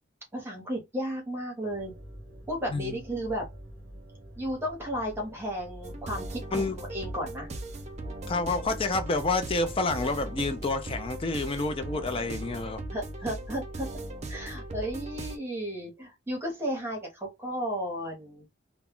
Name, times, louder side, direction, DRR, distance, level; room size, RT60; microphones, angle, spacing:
voice 1, 0.3-1.9 2.5-3.5 4.3-7.5 12.9-13.9 14.3-18.4, equal, 10° right, 0.9 m, -34 dB
sound 1, 1.7-10.5, equal, 10° left, 1.1 m, -47 dB
sound 2, 5.8-15.4, right 1 dB, 35° right, 0.5 m, -38 dB
voice 2, 8.3-12.8, left 3 dB, 25° left, 0.4 m, -29 dB
2.3 x 2.1 x 3.6 m
head